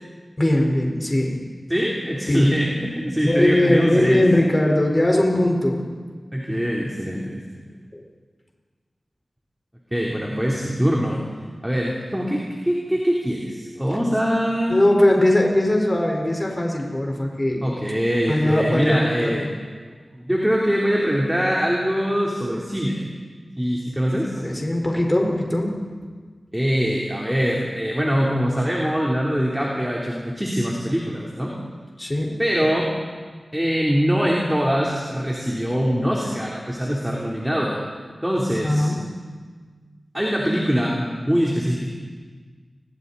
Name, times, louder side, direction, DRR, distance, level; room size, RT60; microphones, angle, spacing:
voice 1, 0.4-1.4 2.3-2.6 3.2-5.8 7.9-8.0 14.7-17.7 18.3-19.5 24.4-25.8 32.0-32.4 38.6-39.0, left 1 dB, 25° left, 0 dB, 4.7 m, -20 dB
voice 2, 1.7-4.2 6.3-7.4 9.9-11.3 11.6-14.8 17.6-19.5 20.1-23.0 23.6-24.4 26.5-31.5 32.4-32.9 33.5-38.9 40.1-41.9, equal, 10° right, -4 dB, 3.8 m, -23 dB
29.0 x 23.0 x 4.2 m, 1.5 s
wide cardioid pair, 50°, 0 cm